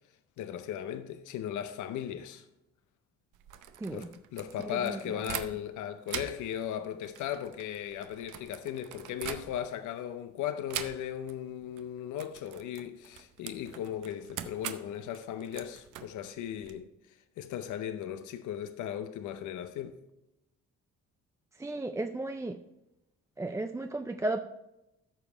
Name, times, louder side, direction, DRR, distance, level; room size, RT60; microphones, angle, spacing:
voice 1, 0.4-2.4 3.9-20.0, left 10 dB, 75° left, 0.6 m, -37 dB
sound 1, 3.3-5.8 6.0-9.9 10.7-11.4 11.6-11.8 12.1-16.7, right 10 dB, 85° right, 0.8 m, -43 dB
voice 2, 3.8-4.1 4.7-5.2 21.6-22.6 23.4-24.4, right 2 dB, 10° right, 0.4 m, -34 dB
13.5 x 5.2 x 4.5 m
cardioid pair, 90°, 30 cm